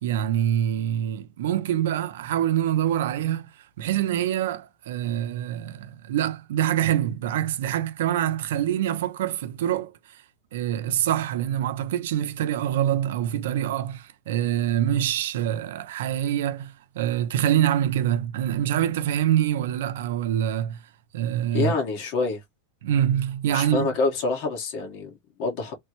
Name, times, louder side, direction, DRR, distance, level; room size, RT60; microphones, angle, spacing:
voice 1, 0.0-3.5 3.8-9.9 10.5-20.8 21.1-21.7 22.8-23.9, right 11 dB, 80° right, 0.6 m, -25 dB
voice 2, 21.5-22.4 23.5-25.7, left 3 dB, 50° left, 1.4 m, -27 dB
3.3 x 2.2 x 3.0 m
supercardioid pair, 140°, 0 cm